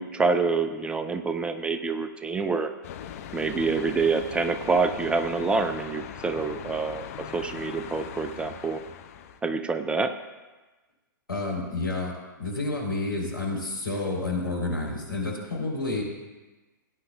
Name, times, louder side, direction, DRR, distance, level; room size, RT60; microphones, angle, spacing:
voice 1, 0.0-2.7 3.3-7.0 7.3-8.8 9.4-10.1, right 4 dB, 10° right, 8 dB, 0.4 m, -26 dB
sound 1, 2.8-9.4, left 9 dB, 45° left, 0.7 m, -40 dB
voice 2, 11.3-16.0, left 2 dB, 80° left, -2 dB, 3.7 m, -30 dB
17.0 x 9.6 x 2.4 m, 1.2 s
figure-of-eight pair, 110°, 11 cm